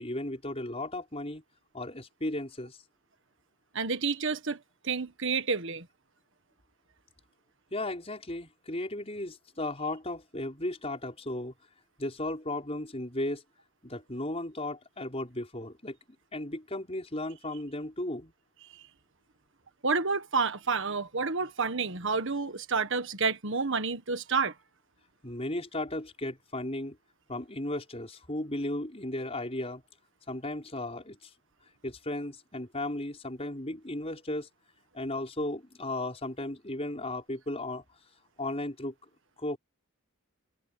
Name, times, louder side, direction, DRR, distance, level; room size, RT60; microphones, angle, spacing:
voice 1, 0.0-1.4 1.7-2.8 7.7-11.5 12.0-13.4 13.8-16.0 16.3-18.3 25.2-27.0 27.3-29.8 30.3-31.3 31.8-34.5 34.9-37.8 38.4-38.9 39.4-39.6, left 1 dB, 30° left, 5.9 m, -35 dB
voice 2, 3.7-4.6 4.8-5.8 19.8-24.5, right 4 dB, 60° right, 1.6 m, -29 dB
head